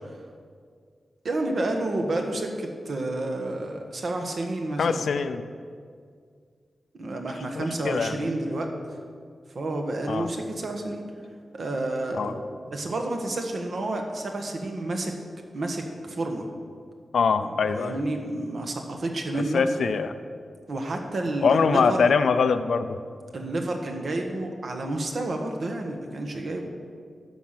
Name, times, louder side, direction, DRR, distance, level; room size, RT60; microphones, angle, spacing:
voice 1, 1.2-5.1 6.9-8.7 9.5-11.0 11.5-12.4 12.7-15.1 15.5-16.5 17.4-19.6 20.7-22.1 23.3-26.7, right 2 dB, 55° right, 3 dB, 1.3 m, -30 dB
voice 2, 4.8-5.4 7.5-8.3 10.1-10.3 12.2-12.3 17.1-18.0 19.5-20.1 21.4-23.0, left 5 dB, 80° left, 10 dB, 0.5 m, -23 dB
11.5 x 5.7 x 7.6 m, 2.1 s
wide cardioid pair, 170°, 0 cm